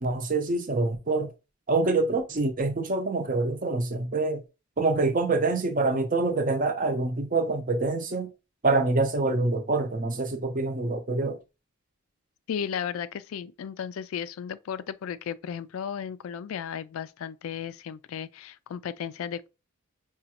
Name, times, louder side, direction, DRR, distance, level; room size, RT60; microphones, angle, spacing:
voice 1, 0.0-1.3 1.7-4.4 4.8-8.3 8.6-11.4, right 3 dB, 40° right, 0.6 m, -26 dB
voice 2, 12.5-19.5, left 8 dB, 75° left, 0.3 m, -35 dB
5.0 x 2.3 x 2.9 m
head